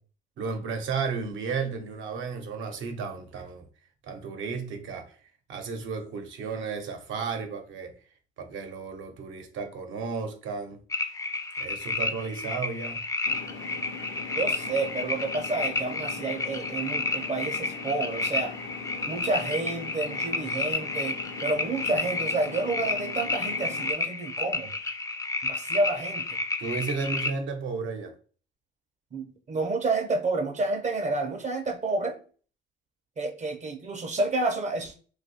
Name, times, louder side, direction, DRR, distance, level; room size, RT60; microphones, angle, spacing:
voice 1, 0.4-3.7 4.0-5.2 5.5-7.9 8.4-10.8 11.6-13.1 26.6-28.1, right 5 dB, 75° right, 0.7 m, -33 dB
sound 1, 10.9-27.3, left 3 dB, 15° left, 0.4 m, -31 dB
sound 2, 13.2-23.9, left 5 dB, 70° left, 0.6 m, -41 dB
voice 2, 14.4-18.5 19.1-24.7 25.4-26.4 29.1-32.2 33.2-35.0, right 3 dB, 35° right, 0.5 m, -30 dB
2.6 x 2.3 x 4.1 m
cardioid pair, 90°, 20 cm